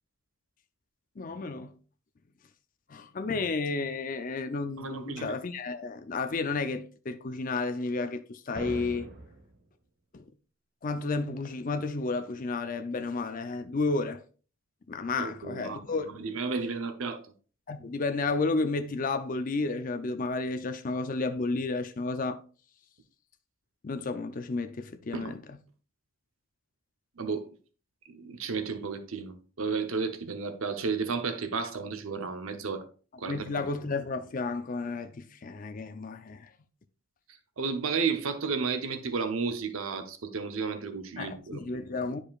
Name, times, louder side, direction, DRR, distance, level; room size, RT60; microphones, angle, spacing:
voice 1, 1.2-1.7 2.9-9.1 10.1-10.2 10.8-14.2 14.9-16.1 17.7-22.4 23.8-25.4 33.2-36.5 41.2-42.2, left 3 dB, 40° left, 0.5 m, -32 dB
voice 2, 4.8-5.4 15.2-17.2 25.1-25.4 27.2-27.5 28.1-32.8 33.2-33.6 37.6-41.6, right 5 dB, 75° right, 0.8 m, -33 dB
sound 1, 8.6-9.6, right 2 dB, 55° right, 1.2 m, -41 dB
10.5 x 5.0 x 2.4 m
head